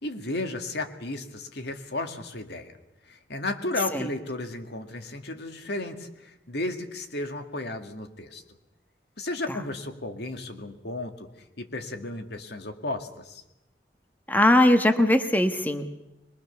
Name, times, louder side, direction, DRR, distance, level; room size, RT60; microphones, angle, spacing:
voice 1, 0.0-2.7 3.1-8.4 9.2-11.3 11.6-13.4, left 2 dB, 70° left, 6 dB, 2.1 m, -34 dB
voice 2, 14.3-15.9, left 1 dB, 10° left, 7 dB, 1.2 m, -20 dB
22.5 x 22.5 x 7.0 m, 0.93 s
head